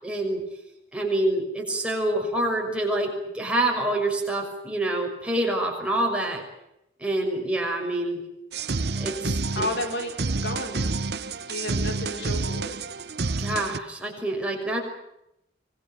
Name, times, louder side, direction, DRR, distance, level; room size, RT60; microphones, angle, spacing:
voice 1, 0.0-0.4 0.9-6.4 7.0-8.2 9.0-9.7 13.4-14.8, right 1 dB, 5° right, 0 dB, 6.0 m, -26 dB
sound 1, 8.5-13.8, right 3 dB, 65° right, 1.0 m, -29 dB
voice 2, 9.5-10.9 11.5-12.8, left 1 dB, 70° left, 5 dB, 4.5 m, -32 dB
25.5 x 21.0 x 9.3 m, 0.84 s
head